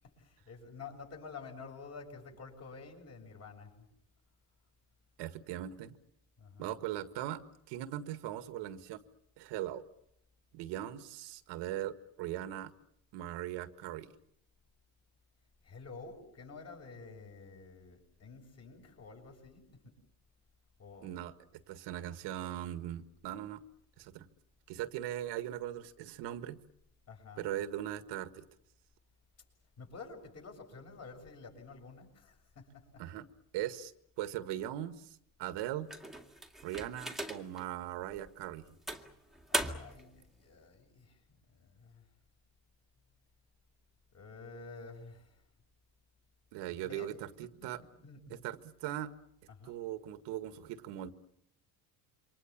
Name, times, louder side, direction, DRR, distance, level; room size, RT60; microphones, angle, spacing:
voice 1, 0.0-3.7 6.4-6.8 15.6-19.9 20.8-21.1 27.1-27.4 29.8-33.0 39.5-42.1 44.1-45.4 46.7-47.1 47.6-47.7 48.0-48.4 49.6-49.7, left 4 dB, 40° left, 3 dB, 7.1 m, -50 dB
voice 2, 5.2-6.0 6.6-7.4 7.7-9.0 9.4-9.8 10.5-12.7 13.1-14.1 21.0-23.6 24.0-24.3 24.7-26.6 27.4-28.4 33.0-33.3 33.5-33.9 34.2-35.9 36.6-38.8 46.5-47.8 48.3-49.1 49.6-51.1, right 12 dB, 80° right, 10 dB, 1.8 m, -39 dB
sound 1, 35.9-37.6 38.2-38.3 38.9-40.1, right 1 dB, ahead, 2.0 m, -38 dB
28.0 x 25.0 x 7.2 m, 0.74 s
cardioid pair, 140°, 41 cm